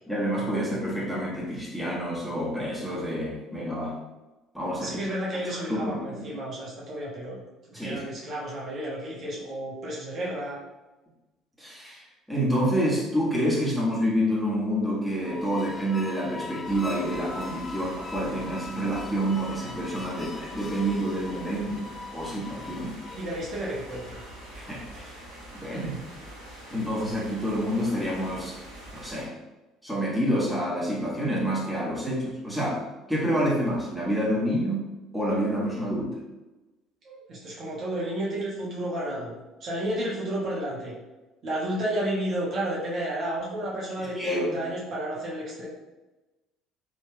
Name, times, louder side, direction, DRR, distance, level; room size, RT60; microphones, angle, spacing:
voice 1, 0.1-4.0 4.5-5.2 5.5-6.3 7.7-8.0 11.6-12.0 12.3-21.9 22.1-23.0 24.5-25.2 25.5-25.9 26.7-28.6 28.9-29.3 29.8-34.9 35.1-36.2 44.0-44.6, equal, ahead, -6 dB, 1.3 m, -28 dB
voice 2, 4.8-7.4 7.7-10.6 23.1-24.2 37.0-39.3 39.6-40.9 41.4-45.7, right 1 dB, 45° right, -6 dB, 1.1 m, -32 dB
sound 1, 15.1-24.5, left 3 dB, 30° left, 0.4 m, -41 dB
sound 2, 16.6-29.3, right 1 dB, 80° right, 1.5 m, -45 dB
4.3 x 2.9 x 2.2 m, 1.1 s
figure-of-eight pair, 55°, 0 cm